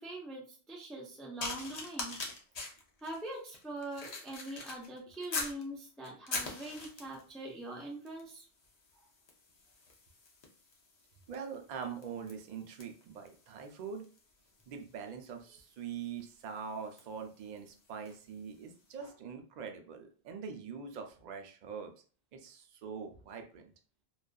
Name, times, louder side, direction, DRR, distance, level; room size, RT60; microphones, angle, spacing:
voice 1, 0.0-2.2 2.6-2.7 3.0-8.5, right 1 dB, ahead, -2 dB, 0.3 m, -43 dB
sound 1, 1.4-5.6 6.0-7.3 8.1-8.3 8.6-18.3 19.0-19.1, left 3 dB, 45° left, 0.6 m, -44 dB
voice 2, 11.3-14.1 14.7-21.9 22.3-23.6, right 6 dB, 55° right, 5 dB, 0.5 m, -43 dB
2.5 x 2.3 x 2.2 m, 0.40 s
omnidirectional pair, 1.1 m